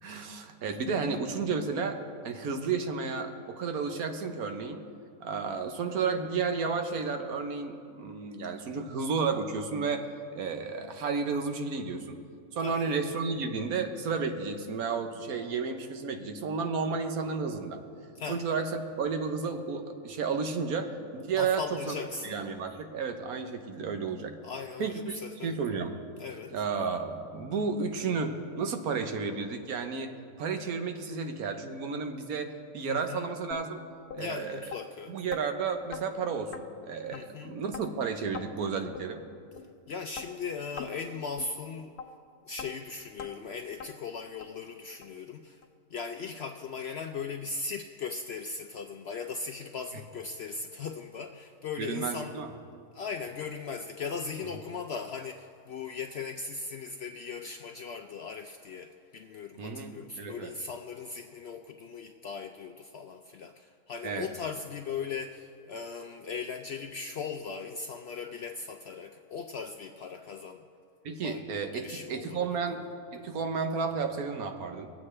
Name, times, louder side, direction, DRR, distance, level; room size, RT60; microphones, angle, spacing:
voice 1, 0.0-4.8 5.2-10.1 10.3-12.2 12.5-17.8 18.3-21.9 22.2-24.3 24.8-25.2 25.4-26.0 26.5-33.8 34.1-34.7 35.1-39.2 51.8-52.5 59.6-60.5 64.0-64.3 71.0-72.8 73.1-74.9, right 5 dB, 80° right, 6 dB, 1.4 m, -32 dB
voice 2, 12.6-12.9 18.2-18.4 21.4-22.4 24.4-25.5 26.2-26.5 32.9-33.2 34.2-35.2 37.1-37.5 39.9-41.9 42.5-45.6 45.9-52.4 52.9-70.6 71.2-71.4 71.7-72.4, left 5 dB, 70° left, 5 dB, 0.6 m, -38 dB
sound 1, 33.5-33.6 34.1-34.2 34.7-34.8 35.3-35.4 35.9-36.1 36.5-36.6 37.1-37.2 37.7-37.9 38.3-38.5 39.0-39.1 39.6-39.7 40.2-40.3 40.8-40.9 41.4-41.5 42.0-42.1 42.6-42.7 43.2-43.3 43.8-43.9 44.4-44.5 45.0-45.1 45.6-45.7 46.2-46.3, left 6 dB, 85° left, 1.3 m, -41 dB
21.5 x 8.3 x 3.3 m, 2.3 s
omnidirectional pair, 1.5 m